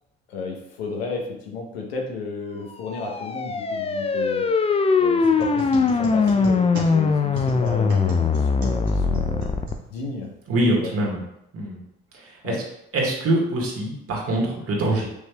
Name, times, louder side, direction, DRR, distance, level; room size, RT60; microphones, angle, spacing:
voice 1, 0.3-4.5 5.0-9.5 9.9-10.3 10.6-10.9 12.4-12.6, left 4 dB, 90° left, 1 dB, 0.9 m, -33 dB
sound 1, 2.8-9.7, left 4 dB, 20° left, 0.4 m, -21 dB
sound 2, 5.2-10.3, right 2 dB, 70° right, 1.4 m, -37 dB
voice 2, 10.5-11.2 11.5-11.8 12.1-12.6 12.9-15.0, right 1 dB, 50° right, -2 dB, 1.7 m, -24 dB
6.6 x 3.2 x 2.3 m, 0.79 s
hypercardioid pair, 60°, 30 cm